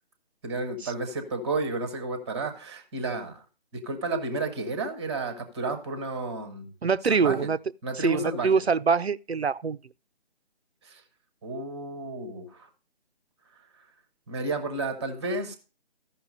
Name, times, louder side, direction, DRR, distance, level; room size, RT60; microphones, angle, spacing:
voice 1, 0.4-3.4 3.7-6.7 7.1-7.4 7.8-8.5 10.8-11.0 11.4-12.7 14.3-15.6, right 2 dB, 10° right, 0.7 m, -32 dB
voice 2, 6.8-7.6 7.9-9.8, right 5 dB, 90° right, 0.6 m, -24 dB
13.5 x 5.6 x 5.3 m
figure-of-eight pair, 150°, 31 cm